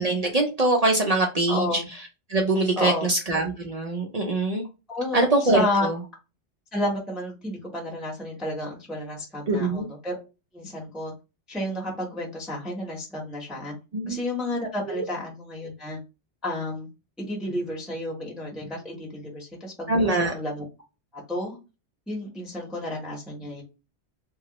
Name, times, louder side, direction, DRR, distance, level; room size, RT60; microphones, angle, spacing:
voice 1, 0.0-1.8 2.3-4.6 5.1-5.9 9.5-9.9 13.9-14.2 14.9-15.0 19.9-20.3, right 2 dB, 50° right, 1 dB, 0.4 m, -23 dB
voice 2, 1.5-1.9 2.8-3.1 4.9-5.9 6.7-10.2 10.5-11.1 11.5-13.7 14.1-16.0 16.4-16.9 17.2-20.6 21.3-21.6 22.1-23.6, left 1 dB, ahead, -2 dB, 0.7 m, -31 dB
2.9 x 2.3 x 2.9 m, 0.29 s
omnidirectional pair, 1.2 m